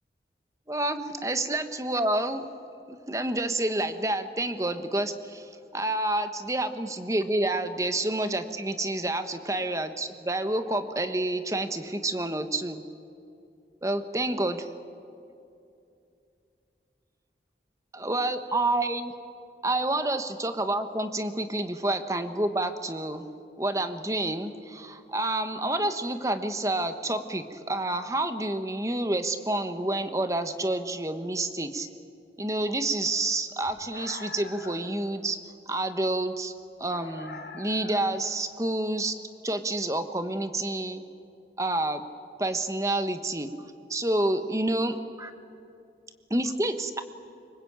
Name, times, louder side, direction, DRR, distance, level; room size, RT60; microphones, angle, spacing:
voice 1, 0.7-2.5 2.9-12.8 13.8-14.7 17.9-19.1 19.6-23.3 23.6-31.9 32.4-35.4 35.7-36.5 36.8-39.2 39.4-41.0 41.6-42.0 42.4-43.5 43.9-45.3 46.3-47.0, right 2 dB, 20° right, 9 dB, 1.3 m, -29 dB
sound 1, 33.6-35.0 36.9-38.3, left 3 dB, 70° left, 2.6 m, -43 dB
25.5 x 23.0 x 8.8 m, 2.6 s
head